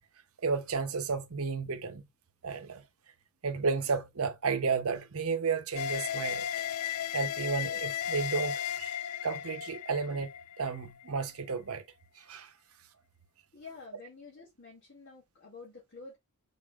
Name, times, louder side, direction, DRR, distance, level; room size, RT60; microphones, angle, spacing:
voice 1, 0.4-2.0 2.4-2.8 3.4-6.5 7.1-8.9 9.2-10.3 10.6-11.8 12.3-12.5, right 5 dB, 70° right, 0.8 m, -32 dB
sound 1, 5.7-11.1, left 10 dB, 80° left, 0.4 m, -35 dB
voice 2, 13.5-16.2, left 4 dB, 45° left, 2.5 m, -49 dB
5.2 x 4.0 x 2.4 m
head